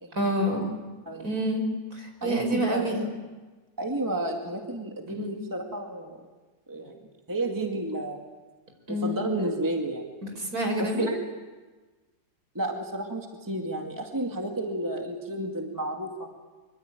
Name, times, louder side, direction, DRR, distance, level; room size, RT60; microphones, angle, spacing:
voice 1, 0.2-0.7 1.2-1.6 1.9-3.0 5.2-5.4 8.9-9.2 10.2-11.1, equal, 50° right, 4 dB, 5.7 m, -28 dB
voice 2, 2.2-3.1 3.8-6.2 6.7-7.0 7.3-8.2 8.9-10.1 10.8-11.2 12.5-16.3, right 1 dB, 10° right, 2 dB, 2.0 m, -31 dB
24.5 x 24.0 x 9.2 m, 1.3 s
omnidirectional pair, 2.0 m